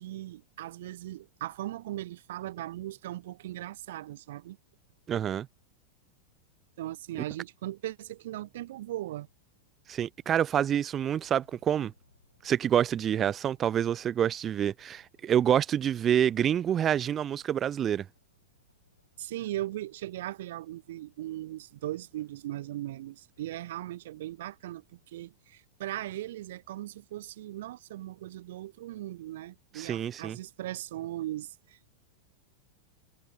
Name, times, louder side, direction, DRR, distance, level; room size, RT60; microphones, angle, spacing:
voice 1, 0.0-4.6 6.8-9.3 19.2-32.0, right 14 dB, 55° right, 0.7 m, -38 dB
voice 2, 5.1-5.5 9.9-11.9 12.4-18.1 29.8-30.4, right 9 dB, 25° right, 0.3 m, -27 dB
sound 1, 11.1-25.3, left 3 dB, 80° left, 5.9 m, -69 dB
figure-of-eight pair, 90°, 0 cm